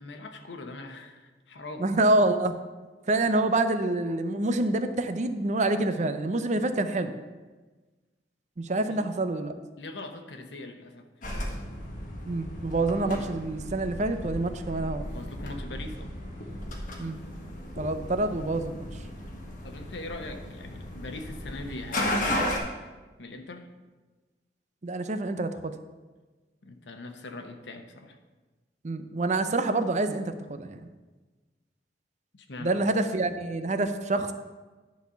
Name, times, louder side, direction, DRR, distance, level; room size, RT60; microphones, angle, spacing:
voice 1, 0.0-1.9 3.4-3.5 8.9-9.0 9.8-11.1 15.1-16.1 19.6-22.5 23.2-23.7 26.6-28.2 32.3-32.8, left 2 dB, 90° left, 6 dB, 1.0 m, -41 dB
voice 2, 1.8-2.5 3.1-7.1 8.6-9.5 12.2-15.1 17.0-17.2 17.8-18.9 24.8-25.7 28.8-30.8 32.6-34.3, right 2 dB, 40° right, 9 dB, 0.5 m, -27 dB
sound 1, 11.2-22.6, left 1 dB, 50° left, 1.5 m, -35 dB
10.5 x 4.1 x 6.8 m, 1.3 s
head